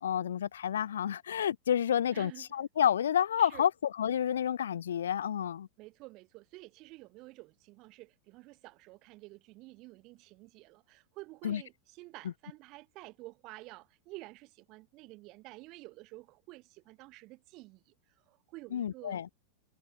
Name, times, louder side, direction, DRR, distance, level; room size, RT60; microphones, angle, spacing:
voice 1, 0.0-3.7 4.0-5.7 11.4-11.6 18.7-19.3, left 9 dB, 65° left, 0.4 m, -29 dB
voice 2, 2.1-2.5 3.4-3.7 5.8-19.2, right 21 dB, 40° right, 2.4 m, -50 dB
figure-of-eight pair, 90°, 0 cm